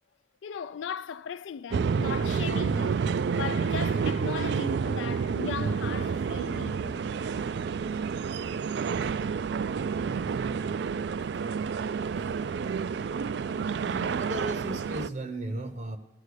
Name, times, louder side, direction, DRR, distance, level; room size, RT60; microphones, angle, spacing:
voice 1, 0.4-3.1 3.3-7.0 8.3-8.5 11.3-11.9, left 7 dB, 75° left, 0.3 m, -38 dB
sound 1, 1.7-15.1, right 5 dB, 60° right, 0.3 m, -29 dB
voice 2, 13.8-16.0, right 1 dB, 40° right, 0.8 m, -37 dB
13.5 x 8.1 x 6.5 m
head